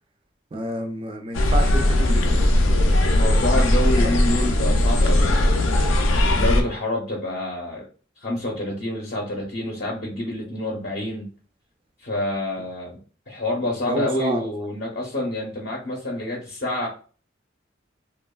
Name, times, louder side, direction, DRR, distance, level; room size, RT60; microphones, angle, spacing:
voice 1, 0.5-2.5 13.9-14.4, right 2 dB, 25° right, 0.4 m, -29 dB
sound 1, 1.3-6.6, left 1 dB, 90° left, 0.5 m, -18 dB
voice 2, 3.2-5.8 6.3-7.8 8.2-11.3 12.0-13.0 13.3-16.9, left 1 dB, 45° left, 0.6 m, -27 dB
2.9 x 2.2 x 2.2 m
head